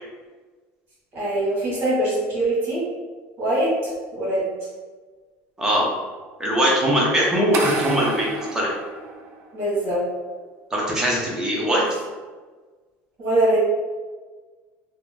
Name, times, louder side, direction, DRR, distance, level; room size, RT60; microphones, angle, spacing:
voice 1, 1.1-2.9 3.4-4.5 9.5-10.0 13.2-13.6, right 1 dB, 40° right, -8 dB, 1.3 m, -22 dB
voice 2, 6.4-8.7 10.7-11.8, equal, 10° right, -5 dB, 0.8 m, -21 dB
sound 1, 7.5-9.6, right 4 dB, 55° right, 0.4 m, -30 dB
2.8 x 2.0 x 3.5 m, 1.4 s
cardioid pair, 140°, 6 cm